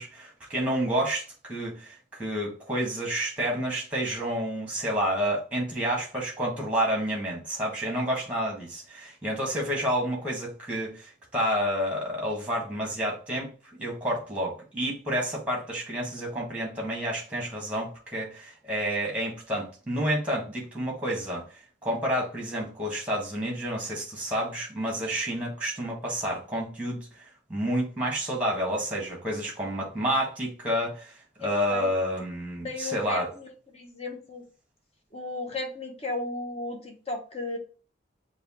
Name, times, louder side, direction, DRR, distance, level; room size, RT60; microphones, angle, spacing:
voice 1, 0.0-13.5 13.8-21.4 21.8-27.1 27.5-31.1 31.4-33.3, equal, 5° right, 1.6 m, -29 dB
voice 2, 32.6-34.4 35.1-37.6, left 2 dB, 30° left, 1.0 m, -35 dB
6.3 x 2.4 x 3.0 m
head